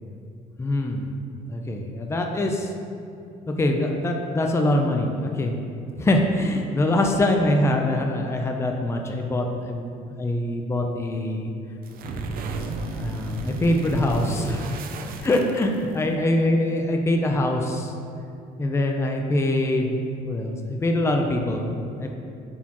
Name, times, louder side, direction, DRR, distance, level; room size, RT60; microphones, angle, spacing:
voice 1, 0.6-1.1 1.5-2.7 3.5-5.6 6.0-9.9 10.2-11.5 12.9-14.8 15.2-17.9 18.6-22.1, left 1 dB, 15° left, 2 dB, 0.5 m, -24 dB
sound 1, 11.8-16.1, right 3 dB, 60° right, 0.6 m, -33 dB
9.6 x 4.2 x 3.0 m, 2.5 s
cardioid pair, 110°, 17 cm